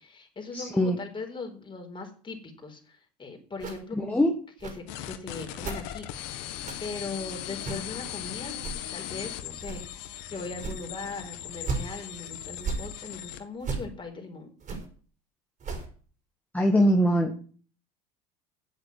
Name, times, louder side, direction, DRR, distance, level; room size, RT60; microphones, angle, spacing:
voice 1, 0.0-4.3 4.6-6.4 6.8-8.6 8.9-14.5, left 3 dB, 25° left, 3 dB, 4.5 m, -39 dB
voice 2, 0.5-1.0 3.9-4.3 16.5-17.4, equal, 5° left, 2 dB, 1.8 m, -22 dB
sound 1, 3.6-3.8 4.6-4.8 5.6-5.8 6.6-6.8 7.6-7.9 8.6-8.8 9.6-9.8 10.6-10.9 11.6-11.8 12.6-12.9 13.6-13.8 14.6-14.8 15.6-15.9, right 4 dB, 40° right, 5.5 m, -33 dB
sound 2, 4.9-13.4, left 12 dB, 65° left, 1.6 m, -39 dB
9.8 x 8.1 x 9.1 m, 0.42 s
hypercardioid pair, 80°, 20 cm